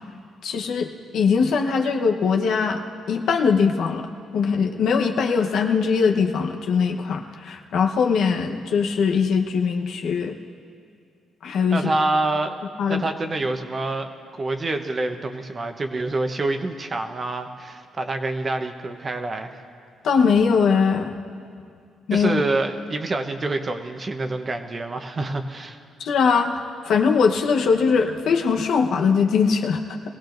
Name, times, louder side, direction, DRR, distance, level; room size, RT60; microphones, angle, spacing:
voice 1, 0.4-2.8 3.1-10.4 11.4-11.9 12.8-13.0 20.0-21.1 22.1-22.4 26.0-29.8, left 5 dB, 75° left, 3 dB, 1.0 m, -21 dB
voice 2, 11.7-12.6 12.9-14.1 14.4-19.6 22.1-25.8, right 2 dB, 35° right, 6 dB, 1.0 m, -26 dB
22.5 x 16.5 x 2.6 m, 2.3 s
cardioid pair, 90°, 0 cm